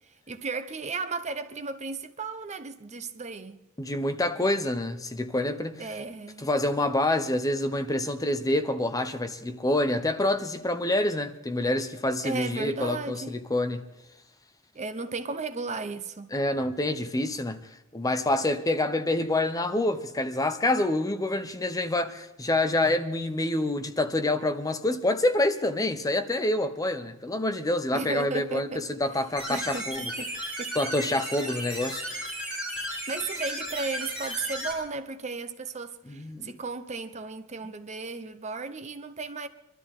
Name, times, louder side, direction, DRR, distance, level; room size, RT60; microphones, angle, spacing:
voice 1, 0.3-3.6 5.8-6.5 12.2-13.4 14.7-16.3 27.9-28.8 29.5-30.8 32.9-39.5, right 4 dB, 35° right, 0.8 m, -35 dB
voice 2, 3.8-5.8 6.4-13.8 16.3-17.6 17.9-30.0 30.7-32.3 36.1-36.5, left 1 dB, 15° left, 0.8 m, -27 dB
sound 1, 29.4-34.7, right 1 dB, 5° right, 4.6 m, -34 dB
24.0 x 13.0 x 3.7 m
head